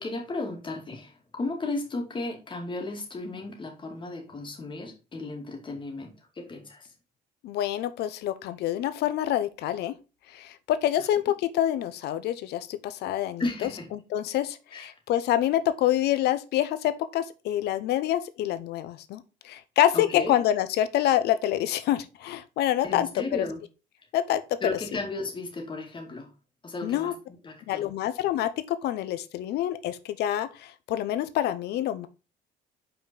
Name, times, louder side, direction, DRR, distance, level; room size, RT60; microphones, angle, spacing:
voice 1, 0.0-6.9 11.0-11.1 13.4-13.9 14.7-14.9 19.9-20.3 22.8-23.6 24.6-26.3 26.6-27.1 27.4-27.9, left 2 dB, 30° left, 2.2 m, -34 dB
voice 2, 7.4-9.9 10.3-23.1 23.3-23.5 24.1-24.8 26.8-27.1 27.7-32.1, left 12 dB, 75° left, 0.8 m, -27 dB
5.7 x 4.3 x 5.1 m
cardioid pair, 110°, 17 cm